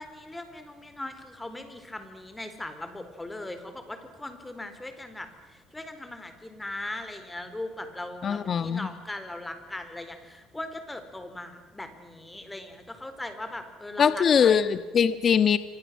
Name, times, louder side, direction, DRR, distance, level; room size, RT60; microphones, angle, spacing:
voice 1, 0.0-14.5, left 1 dB, 10° left, 9 dB, 4.3 m, -39 dB
voice 2, 8.2-8.9 14.0-15.6, left 7 dB, 40° left, 12 dB, 1.4 m, -22 dB
29.0 x 25.5 x 7.7 m, 1.2 s
cardioid pair, 125°, 0 cm